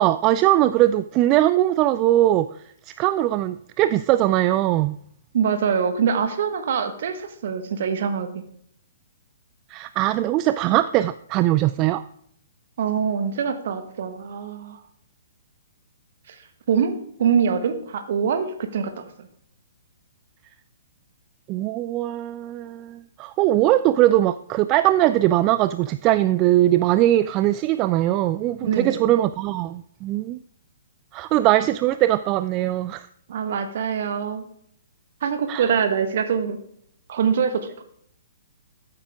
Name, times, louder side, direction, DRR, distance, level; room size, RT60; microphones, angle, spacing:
voice 1, 0.0-2.5 2.9-4.9 9.7-12.0 21.5-30.4 31.1-33.1 35.5-35.6, right 14 dB, 30° right, 13 dB, 0.3 m, -20 dB
voice 2, 5.3-8.3 12.8-14.8 16.3-16.4 16.7-19.3 28.6-29.2 33.3-34.4 35.2-36.6 37.1-37.8, right 7 dB, 50° right, 7 dB, 1.5 m, -24 dB
14.0 x 8.7 x 3.6 m, 0.67 s
figure-of-eight pair, 120°, 0 cm